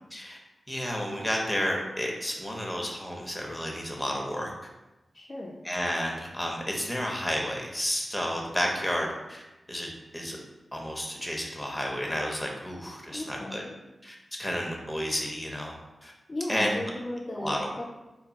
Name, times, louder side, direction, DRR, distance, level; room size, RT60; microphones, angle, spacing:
voice 1, 0.7-4.5 5.6-9.4 9.7-10.4 10.7-13.6 14.0-15.7 16.0-16.1 16.5-16.7 17.4-17.7, equal, 10° left, 0 dB, 0.7 m, -31 dB
voice 2, 5.1-5.6 13.1-13.8 16.3-17.9, left 1 dB, 45° left, -2 dB, 0.4 m, -36 dB
2.3 x 2.2 x 3.8 m, 1.0 s
cardioid pair, 45°, 0 cm